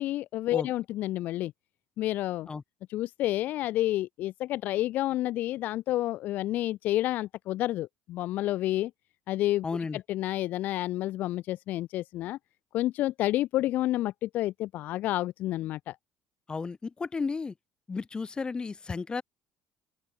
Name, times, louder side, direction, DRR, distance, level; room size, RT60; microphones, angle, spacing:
voice 1, 0.0-1.5 2.0-2.5 2.9-8.9 9.3-9.6 9.9-12.4 12.7-15.9, left 15 dB, 70° left, 1.4 m, -29 dB
voice 2, 9.6-10.0 16.5-17.5 17.9-19.2, left 4 dB, 30° left, 4.1 m, -33 dB
open air
supercardioid pair, 75°, 3 cm